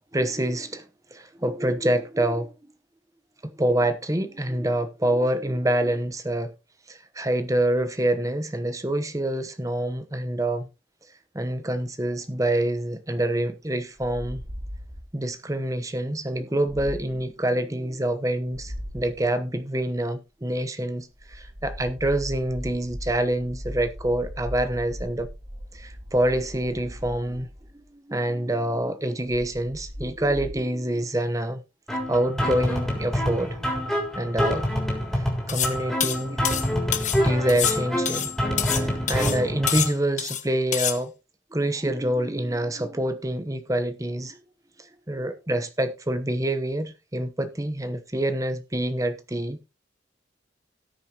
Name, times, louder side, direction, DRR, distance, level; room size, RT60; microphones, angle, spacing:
voice 1, 0.1-0.8 1.1-2.5 3.6-6.5 6.9-10.7 11.3-14.4 15.1-25.3 25.7-27.5 27.7-31.6 32.1-33.5 34.2-34.7 35.1-36.6 37.2-38.3 38.7-41.1 41.5-44.4 45.1-49.7, right 1 dB, 20° right, 1.0 m, -26 dB
sound 1, 14.0-15.2 16.7-17.3 18.5-19.2 21.1-27.9 29.2-30.6, equal, 35° right, 3.1 m, -38 dB
sound 2, 31.9-39.9, equal, 5° left, 3.6 m, -26 dB
sound 3, 35.5-35.7 36.0-37.2 37.5-38.8 39.1-39.4 39.7-40.4 40.7-41.0, left 10 dB, 40° left, 1.2 m, -27 dB
18.0 x 6.7 x 2.9 m
head